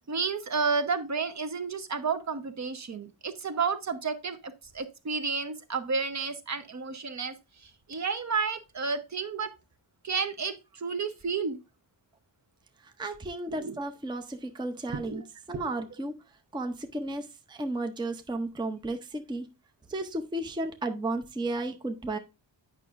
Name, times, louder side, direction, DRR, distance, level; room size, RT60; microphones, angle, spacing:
voice 1, 0.1-4.4 4.7-7.3 7.9-9.5 10.0-11.6 13.5-13.8 14.9-15.2 15.5-15.7, right 5 dB, 40° right, 10 dB, 0.9 m, -31 dB
voice 2, 13.0-15.2 15.5-16.1 16.5-19.5 19.9-22.2, right 2 dB, 10° right, 6 dB, 0.6 m, -33 dB
8.9 x 5.7 x 2.5 m, 0.27 s
wide cardioid pair, 150°, 44 cm